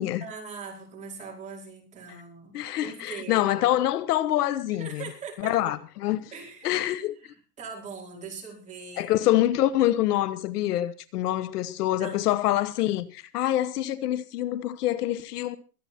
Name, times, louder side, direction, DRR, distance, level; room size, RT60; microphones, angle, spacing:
voice 1, 0.2-3.7 4.8-5.7 6.3-6.8 7.2-9.3 11.9-12.3, right 5 dB, 15° right, 4.9 m, -41 dB
voice 2, 2.5-5.0 5.4-6.3 6.6-7.2 9.0-15.6, left 13 dB, 75° left, 1.3 m, -26 dB
23.0 x 8.9 x 4.3 m
supercardioid pair, 165°, 47 cm